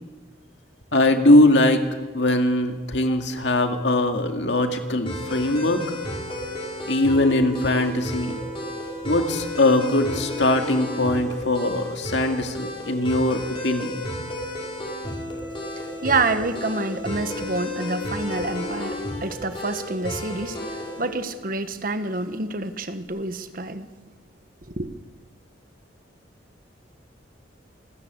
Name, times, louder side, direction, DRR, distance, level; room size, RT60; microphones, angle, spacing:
voice 1, 0.9-1.9 2.1-5.8 6.9-8.4 9.1-14.0, left 1 dB, 70° left, 2.1 m, -21 dB
sound 1, 5.1-21.1, left 1 dB, 30° left, 5.4 m, -32 dB
voice 2, 16.0-23.9 24.7-25.0, right 3 dB, 50° right, 1.3 m, -27 dB
27.5 x 13.5 x 8.1 m
head